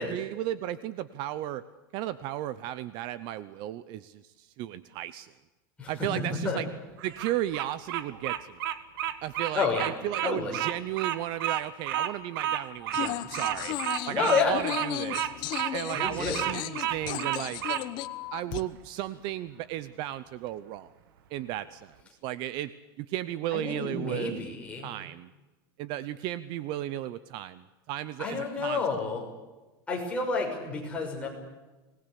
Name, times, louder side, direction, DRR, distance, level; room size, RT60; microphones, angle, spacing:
voice 1, 0.0-1.6 1.9-5.3 5.9-6.7 7.0-8.6 9.2-13.8 14.1-15.5 15.7-17.6 18.3-20.9 21.3-21.9 22.2-22.7 23.0-24.4 24.8-25.3 25.8-28.8, right 13 dB, 40° right, 15 dB, 0.8 m, -34 dB
Bird vocalization bird call bird song, 7.0-17.8, right 11 dB, 75° right, 1.7 m, -31 dB
voice 2, 9.5-9.9 10.2-10.5 14.1-14.6 15.9-16.5 23.5-24.9 28.2-29.2 29.9-31.3, left 4 dB, 10° left, -1 dB, 6.1 m, -29 dB
sound 1, 12.9-18.6, left 15 dB, 40° left, 1.0 m, -35 dB
25.5 x 20.0 x 8.3 m, 1.2 s
supercardioid pair, 165°, 12 cm